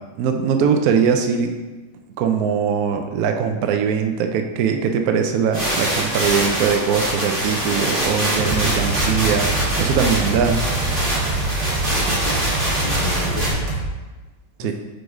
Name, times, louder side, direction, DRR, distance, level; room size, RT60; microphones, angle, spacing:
voice 1, 0.2-1.6 2.2-9.5 9.8-10.6 14.6-14.7, right 7 dB, 80° right, 5 dB, 0.8 m, -21 dB
sound 1, 5.5-13.5, right 1 dB, 25° right, 2.1 m, -24 dB
sound 2, 8.4-13.9, right 2 dB, 65° right, 1.7 m, -25 dB
voice 2, 11.8-13.7 14.6-14.7, left 4 dB, 85° left, -3 dB, 1.6 m, -33 dB
4.9 x 3.9 x 4.8 m, 1.2 s
omnidirectional pair, 2.2 m